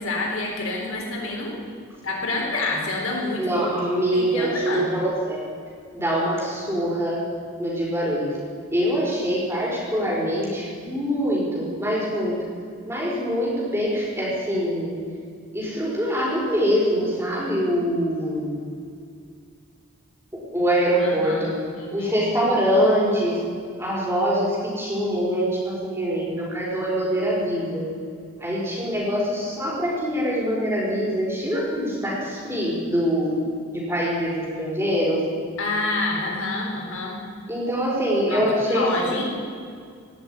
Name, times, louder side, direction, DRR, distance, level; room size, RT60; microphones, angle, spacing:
voice 1, 0.0-1.6 2.0-3.7 4.1-5.0 21.0-22.1 35.6-37.2 38.3-39.2, left 2 dB, 90° left, -1 dB, 4.1 m, -28 dB
voice 2, 3.4-5.4 5.9-7.2 7.6-8.3 8.7-12.3 12.8-15.0 15.5-18.6 20.5-21.5 21.9-23.4 23.8-27.8 28.4-33.4 33.7-35.2 37.5-39.1, equal, 10° right, -5 dB, 5.0 m, -24 dB
17.5 x 7.8 x 9.8 m, 2.2 s
head